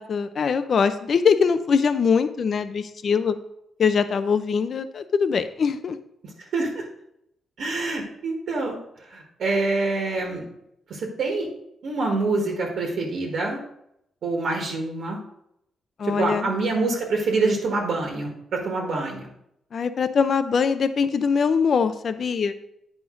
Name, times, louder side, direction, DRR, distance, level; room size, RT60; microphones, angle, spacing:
voice 1, 0.0-3.4 3.8-6.0 16.0-16.5 19.7-22.6, left 6 dB, 50° left, 11 dB, 0.5 m, -22 dB
voice 2, 6.4-6.8 7.6-10.5 10.9-11.5 11.8-13.6 14.2-15.2 16.0-19.3, right 3 dB, 65° right, 0 dB, 1.6 m, -26 dB
9.4 x 5.1 x 3.8 m, 0.77 s
cardioid pair, 125°, 0 cm